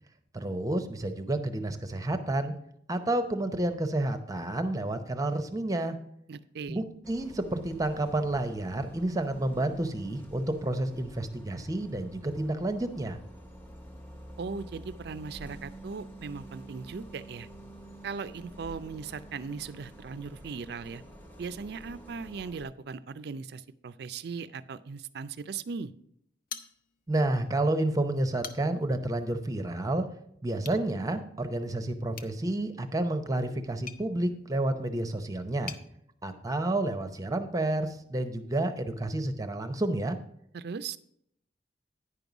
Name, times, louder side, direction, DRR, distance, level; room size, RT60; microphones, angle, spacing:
voice 1, 0.3-2.5 2.9-6.0 6.7-13.2 27.1-30.0 30.4-35.8 36.2-40.2, right 1 dB, 20° right, 8 dB, 0.7 m, -30 dB
voice 2, 6.3-6.8 14.4-17.5 18.0-21.0 21.4-25.9 40.5-41.0, right 5 dB, 60° right, 15 dB, 0.4 m, -38 dB
Bus, 7.0-22.6, right 1 dB, 10° left, 0.8 m, -48 dB
sound 1, 26.5-27.2 27.6-27.7 28.2-28.9 30.6-30.8 32.1-35.9, left 7 dB, 50° left, 0.6 m, -46 dB
9.8 x 5.4 x 6.0 m, 0.72 s
head